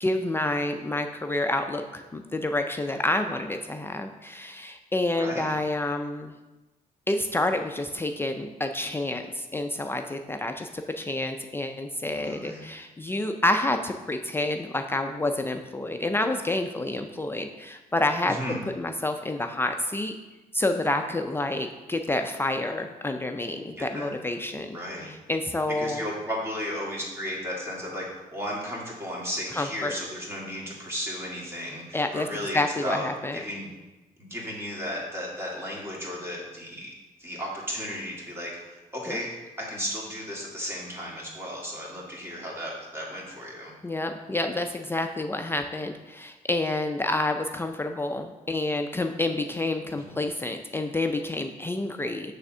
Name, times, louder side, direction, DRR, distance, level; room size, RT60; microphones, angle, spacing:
voice 1, 0.0-6.3 7.1-18.4 18.8-20.2 20.5-24.8 25.1-26.0 29.6-29.9 31.9-32.3 32.5-33.4 39.1-39.2 43.8-52.4, left 2 dB, 15° left, 5 dB, 0.3 m, -28 dB
voice 2, 5.2-5.6 12.1-12.6 18.2-18.6 23.8-24.1 24.7-25.1 25.7-28.1 28.3-33.7 34.2-43.7 50.1-50.2, equal, 15° right, -4 dB, 1.9 m, -34 dB
6.7 x 3.5 x 6.0 m, 1.1 s
cardioid pair, 125°, 15 cm